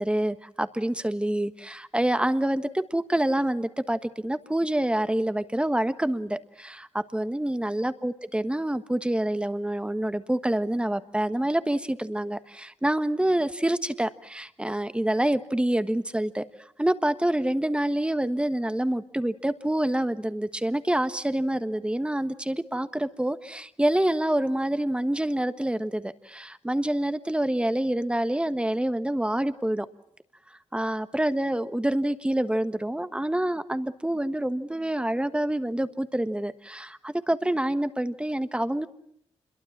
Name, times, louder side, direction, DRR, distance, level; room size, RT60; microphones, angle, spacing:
voice 1, 0.0-16.4 16.8-29.9 30.7-38.9, right 1 dB, 10° right, 11 dB, 1.4 m, -27 dB
27.5 x 22.5 x 7.4 m, 0.69 s
cardioid pair, 75°, 11 cm